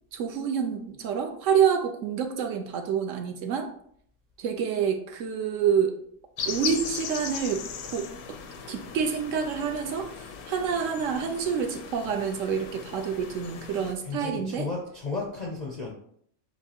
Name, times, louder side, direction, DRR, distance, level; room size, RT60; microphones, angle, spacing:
voice 1, 0.1-3.7 4.4-6.0 6.5-7.6 7.9-8.1 8.7-14.7, right 7 dB, 70° right, 5 dB, 0.8 m, -27 dB
sound 1, 6.4-13.9, left 6 dB, 85° left, 1.1 m, -38 dB
voice 2, 14.0-15.9, left 3 dB, 55° left, -1 dB, 0.4 m, -33 dB
7.1 x 2.5 x 2.8 m, 0.66 s
omnidirectional pair, 1.5 m